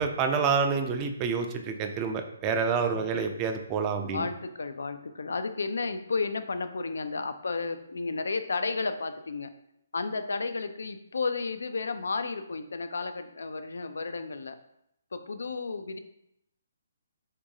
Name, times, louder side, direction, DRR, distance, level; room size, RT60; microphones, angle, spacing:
voice 1, 0.0-4.3, right 5 dB, 25° right, 5 dB, 0.4 m, -28 dB
voice 2, 2.9-3.3 4.1-9.5 9.9-14.6 15.1-16.0, left 4 dB, 75° left, 9 dB, 0.4 m, -32 dB
3.6 x 3.0 x 2.7 m, 0.78 s
figure-of-eight pair, 140°, 0 cm